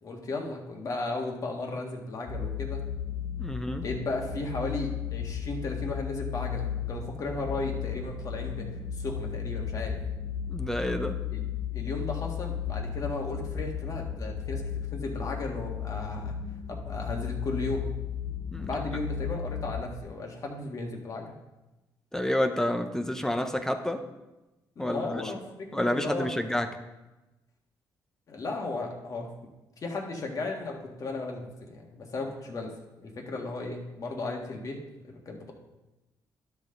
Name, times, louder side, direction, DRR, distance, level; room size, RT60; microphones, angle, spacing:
voice 1, 0.0-2.9 3.8-8.6 8.9-10.0 11.3-11.4 11.7-16.4 16.7-17.9 18.6-21.4 24.8-26.4 28.3-29.3 29.8-32.7 33.0-34.8 35.0-35.5, left 2 dB, 45° left, 1 dB, 1.7 m, -35 dB
sound 1, 2.3-20.0, left 8 dB, 70° left, 1.4 m, -34 dB
voice 2, 3.4-3.8 10.5-11.2 18.5-18.7 22.1-24.0 24.8-25.2 25.7-26.7, left 1 dB, 5° left, 7 dB, 0.6 m, -29 dB
12.0 x 5.9 x 3.8 m, 1.0 s
cardioid pair, 95°, 8 cm